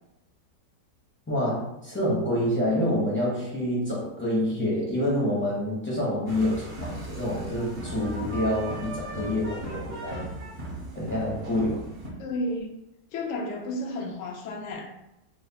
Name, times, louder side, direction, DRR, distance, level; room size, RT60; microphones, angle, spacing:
voice 1, 1.3-10.3 10.9-11.8, left 1 dB, 15° left, -7 dB, 0.4 m, -27 dB
sound 1, 6.3-12.1, right 1 dB, 55° right, 0.6 m, -37 dB
voice 2, 12.2-12.7 13.1-14.9, left 1 dB, 85° left, 1 dB, 0.6 m, -32 dB
3.2 x 2.0 x 4.0 m, 0.87 s
omnidirectional pair, 1.9 m